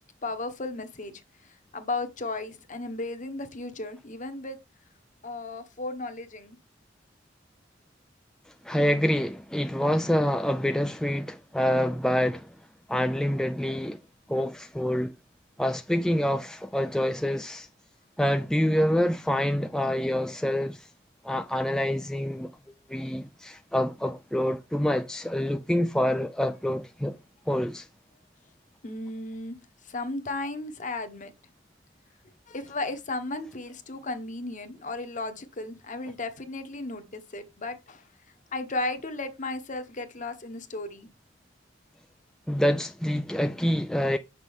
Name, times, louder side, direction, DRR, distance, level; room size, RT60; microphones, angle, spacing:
voice 1, 0.2-1.1 1.7-4.6 5.2-6.6 28.8-29.6 29.9-31.3 32.5-38.0 38.5-41.1, left 2 dB, 40° left, 1.1 m, -34 dB
voice 2, 8.6-12.5 12.9-14.0 14.3-15.1 15.6-17.7 18.2-20.9 21.2-22.5 22.9-27.2 27.5-27.9 42.5-44.2, equal, 5° left, 0.3 m, -26 dB
7.3 x 6.1 x 3.5 m
head